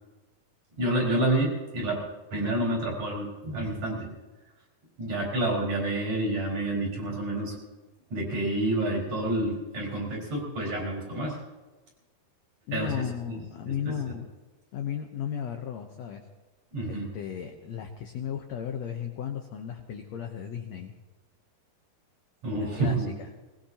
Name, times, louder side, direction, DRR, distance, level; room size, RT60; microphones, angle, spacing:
voice 1, 0.8-2.0 2.3-4.1 5.0-7.6 8.1-11.4 12.7-13.4 13.8-14.2 16.7-17.1 22.4-23.1, right 1 dB, 50° right, -2 dB, 5.9 m, -29 dB
voice 2, 12.7-14.3 14.7-16.2 16.8-20.9 22.5-23.0, left 9 dB, 75° left, 4 dB, 1.6 m, -35 dB
21.0 x 20.0 x 2.9 m, 1.2 s
omnidirectional pair, 4.2 m